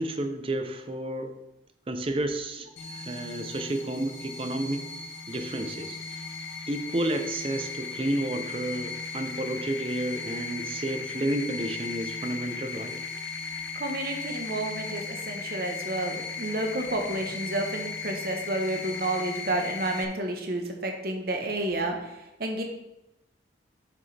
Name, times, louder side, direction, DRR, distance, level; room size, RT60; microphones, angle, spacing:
voice 1, 0.0-1.4 1.9-4.9 5.3-6.2 6.7-13.0, right 1 dB, 30° right, 7 dB, 0.6 m, -31 dB
sound 1, 2.8-20.0, left 4 dB, 75° left, 0.8 m, -37 dB
voice 2, 13.7-22.6, right 1 dB, 55° right, 3 dB, 1.1 m, -30 dB
7.4 x 6.2 x 3.4 m, 0.91 s
head